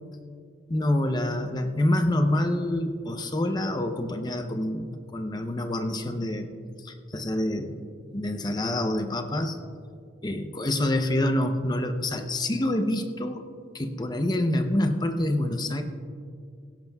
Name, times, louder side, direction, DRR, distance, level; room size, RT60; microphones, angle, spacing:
voice 1, 0.7-6.5 6.8-7.8 8.1-9.6 10.2-13.5 13.7-15.8, left 1 dB, 25° left, 6 dB, 0.7 m, -27 dB
17.5 x 16.5 x 2.3 m, 2.2 s
head